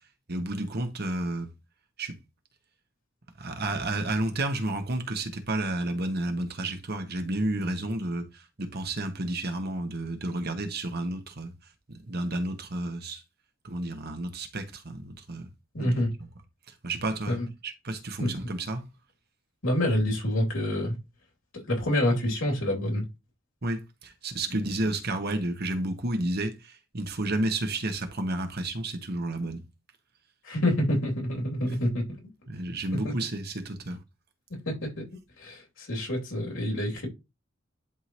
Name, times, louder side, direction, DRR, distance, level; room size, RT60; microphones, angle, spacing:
voice 1, 0.3-1.5 2.0-2.2 3.4-11.5 11.9-13.2 13.6-15.5 15.8-16.3 16.7-18.8 23.6-29.6 32.5-34.0, right 2 dB, 55° right, 1.4 m, -31 dB
voice 2, 15.7-16.1 17.3-17.5 18.2-18.3 19.6-20.9 21.5-23.0 30.4-32.0 34.7-35.1 35.4-37.1, left 1 dB, 85° left, 3.0 m, -27 dB
11.0 x 3.8 x 3.1 m
head